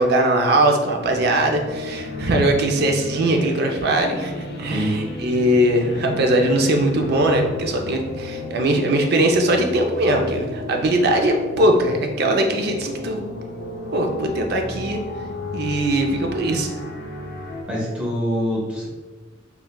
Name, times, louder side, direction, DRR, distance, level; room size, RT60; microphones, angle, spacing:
voice 1, 0.0-13.2 13.9-15.0 15.5-16.7, right 1 dB, 55° right, 3 dB, 0.4 m, -20 dB
sound 1, 1.0-17.6, left 2 dB, 55° left, 0.4 m, -33 dB
voice 2, 17.7-18.9, equal, 5° right, -4 dB, 0.6 m, -24 dB
3.7 x 2.3 x 2.2 m, 1.2 s
head